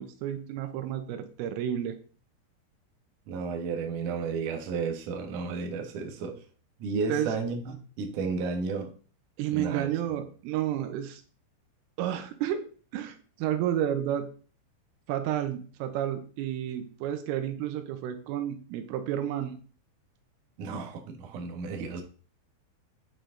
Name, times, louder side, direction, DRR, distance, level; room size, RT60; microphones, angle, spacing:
voice 1, 0.0-2.0 7.1-7.4 9.4-11.2 12.0-12.6 12.9-14.3 15.1-19.6, right 11 dB, 90° right, 7 dB, 3.6 m, -31 dB
voice 2, 3.3-6.4 6.8-8.9 9.5-10.2 20.6-22.0, right 4 dB, 60° right, 3 dB, 2.3 m, -33 dB
9.6 x 8.5 x 3.9 m, 0.40 s
omnidirectional pair, 5.6 m